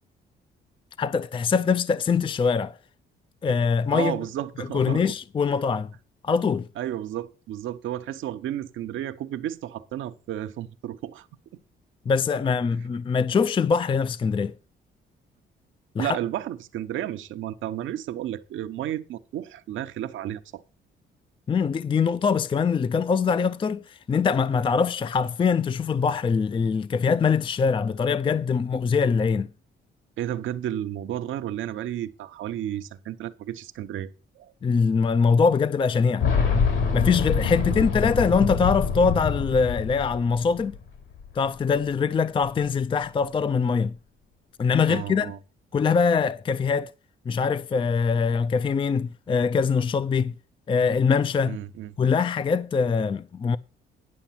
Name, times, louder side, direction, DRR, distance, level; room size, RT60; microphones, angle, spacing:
voice 1, 1.0-2.8 3.4-4.2 4.6-5.9 6.2-6.7 12.1-14.5 16.0-16.2 21.5-29.5 34.6-36.3 36.9-40.7 41.4-43.9 44.6-45.3 45.7-46.9 47.3-50.3 50.7-51.6 52.0-53.6, left 5 dB, 25° left, 0.4 m, -23 dB
voice 2, 3.9-5.0 6.8-11.3 16.0-20.6 30.2-34.1 34.4-34.5 37.4-37.8 44.9-45.4 51.4-51.9, right 12 dB, 80° right, 0.8 m, -32 dB
Boom, 36.2-41.0 41.2-41.3 42.4-42.5, left 5 dB, 75° left, 3.3 m, -25 dB
10.5 x 5.9 x 5.7 m
cardioid pair, 90°, 20 cm